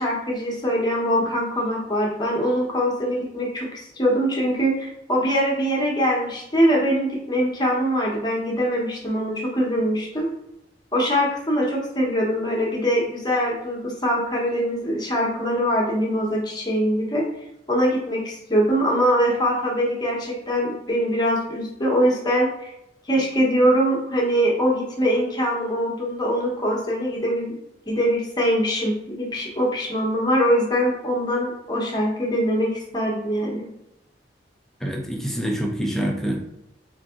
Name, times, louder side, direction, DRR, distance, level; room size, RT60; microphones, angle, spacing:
voice 1, 0.0-10.3 10.9-17.2 17.7-22.7 23.1-27.6 27.9-33.6, equal, 25° left, -2 dB, 0.8 m, -23 dB
voice 2, 34.8-36.4, right 1 dB, 5° left, 0 dB, 0.5 m, -26 dB
4.0 x 2.6 x 2.4 m, 0.85 s
head